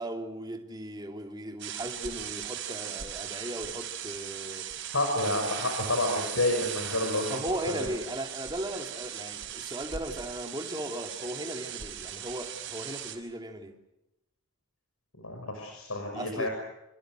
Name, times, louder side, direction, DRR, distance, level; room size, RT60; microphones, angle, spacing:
voice 1, 0.0-4.7 5.2-5.3 7.3-13.7 16.1-16.5, right 1 dB, 20° right, 2.9 m, -37 dB
sound 1, 1.6-13.2, right 9 dB, 55° right, 5.4 m, -38 dB
voice 2, 4.9-7.9 15.2-16.5, left 2 dB, 75° left, 6.4 m, -29 dB
28.0 x 28.0 x 6.4 m
head